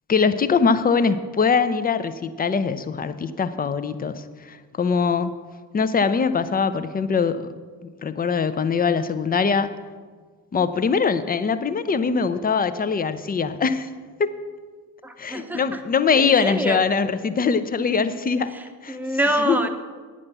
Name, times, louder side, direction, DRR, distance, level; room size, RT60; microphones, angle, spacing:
voice 1, 0.1-5.3 5.7-7.4 8.0-9.7 10.5-13.9 14.2-14.3 15.2-18.5 18.8-19.0 19.4-19.6, left 5 dB, 20° left, 12 dB, 0.5 m, -22 dB
voice 2, 15.0-15.8 16.1-16.8 18.5-19.7, right 1 dB, 5° right, 7 dB, 0.8 m, -26 dB
9.5 x 6.2 x 6.6 m, 1.5 s
figure-of-eight pair, 45°, 50 cm